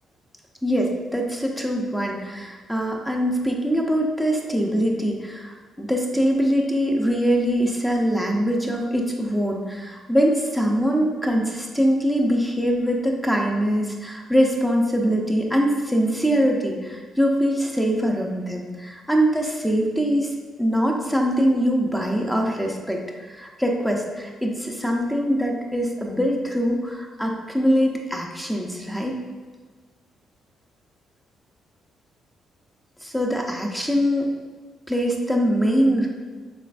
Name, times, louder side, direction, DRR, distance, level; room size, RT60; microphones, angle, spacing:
voice 1, 0.6-20.3 20.6-23.0 23.3-29.1 33.0-34.3 34.9-36.1, equal, 5° left, 0 dB, 0.7 m, -23 dB
6.4 x 3.1 x 2.6 m, 1.4 s
cardioid pair, 90°, 0 cm